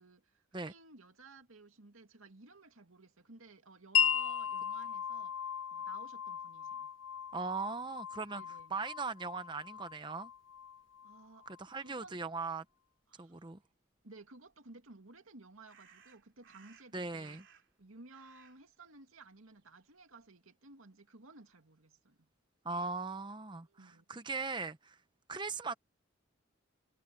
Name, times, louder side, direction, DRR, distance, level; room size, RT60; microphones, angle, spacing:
voice 1, 0.0-5.3 5.7-6.9 8.3-8.8 11.0-11.5 11.8-12.2 13.1-13.5 14.0-17.4 17.8-22.3 23.6-24.0, right 3 dB, 90° right, 2.4 m, -56 dB
Wind chime, 3.9-11.6, left 8 dB, 70° left, 0.8 m, -37 dB
voice 2, 7.3-8.4 8.7-10.3 11.5-12.6 13.2-13.6 16.9-17.4 22.6-25.0 25.3-25.7, right 4 dB, 20° right, 0.7 m, -39 dB
sound 1, 14.5-14.6 15.7-17.8 18.1-20.2, right 6 dB, 60° right, 3.2 m, -63 dB
head